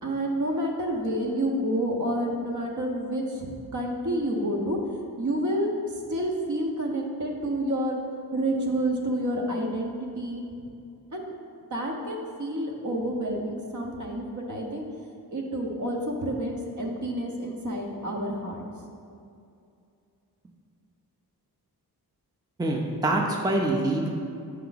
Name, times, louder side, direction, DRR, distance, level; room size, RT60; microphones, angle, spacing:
voice 1, 0.0-4.8 5.2-8.0 8.3-10.4 11.1-11.3 11.7-14.9 15.3-18.6, right 1 dB, 50° right, 0 dB, 1.0 m, -29 dB
voice 2, 22.6-24.1, right 2 dB, 10° right, 0 dB, 0.6 m, -25 dB
5.7 x 4.7 x 4.0 m, 2.5 s
cardioid pair, 60°, 38 cm